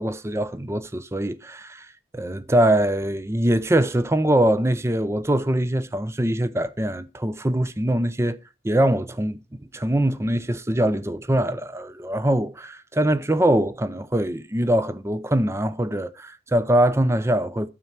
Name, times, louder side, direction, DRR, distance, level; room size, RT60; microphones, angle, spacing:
voice 1, 0.0-1.9 2.1-8.4 8.6-9.4 9.7-17.7, right 1 dB, 15° right, 0.6 m, -23 dB
12.5 x 4.5 x 7.4 m
head